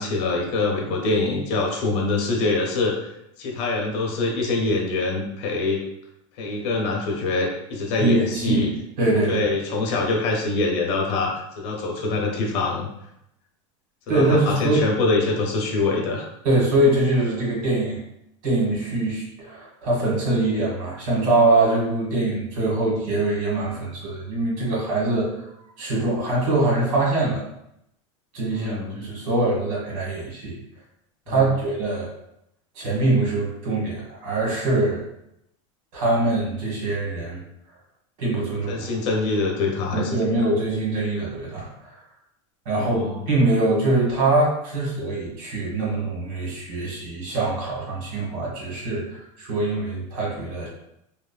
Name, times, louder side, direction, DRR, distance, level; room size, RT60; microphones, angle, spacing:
voice 1, 0.0-3.1 3.4-5.8 6.4-8.7 9.2-12.9 14.1-16.3 28.5-29.0 31.3-31.6 38.7-40.5 42.7-43.3, left 3 dB, 55° left, 0 dB, 0.7 m, -25 dB
voice 2, 8.0-8.7 9.0-9.5 14.1-14.8 16.4-18.0 18.4-25.4 25.8-27.4 28.3-30.6 31.3-32.1 32.7-35.0 35.9-37.4 38.2-38.8 39.9-42.0 42.6-50.7, right 2 dB, 80° right, -4 dB, 1.4 m, -23 dB
3.0 x 2.3 x 2.2 m, 0.81 s
supercardioid pair, 150°, 17 cm